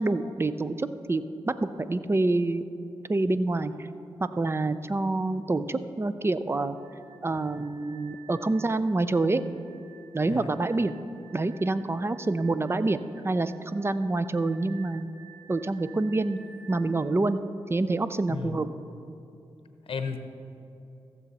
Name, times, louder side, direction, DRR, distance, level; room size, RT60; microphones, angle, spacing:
voice 1, 0.0-2.6 3.1-3.9 4.2-6.8 7.2-9.4 10.1-10.9 11.3-13.0 13.2-15.1 15.5-16.4 16.7-17.4 17.7-18.7, right 2 dB, 25° right, 12 dB, 0.5 m, -27 dB
sound 1, 6.8-16.9, right 8 dB, 40° right, 2.3 m, -54 dB
voice 2, 18.3-18.6 19.8-20.2, left 5 dB, 70° left, 7 dB, 0.8 m, -33 dB
15.0 x 7.0 x 4.2 m, 2.8 s
cardioid pair, 55°, 10 cm